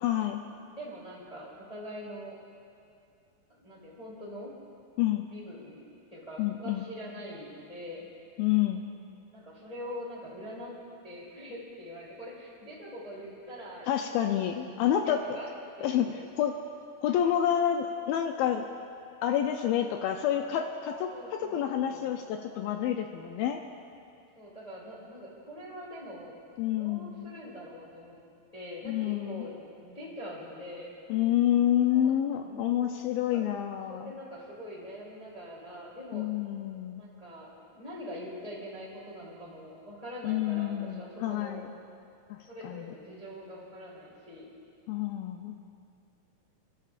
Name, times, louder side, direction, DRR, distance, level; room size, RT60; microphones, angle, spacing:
voice 1, 0.0-0.4 5.0-5.3 6.4-6.9 8.4-8.8 13.9-15.2 15.8-16.1 16.4-16.5 17.0-18.7 19.2-21.1 21.5-23.6 26.6-27.3 28.9-29.5 31.1-34.1 36.1-37.0 40.2-41.7 42.3-42.4 42.6-42.9 44.9-45.5, left 11 dB, 80° left, 4 dB, 2.2 m, -28 dB
voice 2, 0.7-2.3 3.5-4.5 5.2-8.0 9.3-10.7 11.0-13.9 14.9-16.3 21.1-22.2 24.3-26.4 26.7-28.1 28.5-29.5 29.8-30.9 31.9-32.1 32.4-32.9 33.3-33.5 33.9-36.3 37.0-41.6 42.5-44.5, equal, 10° left, -7 dB, 2.0 m, -43 dB
29.0 x 12.0 x 2.5 m, 2.5 s
omnidirectional pair, 4.4 m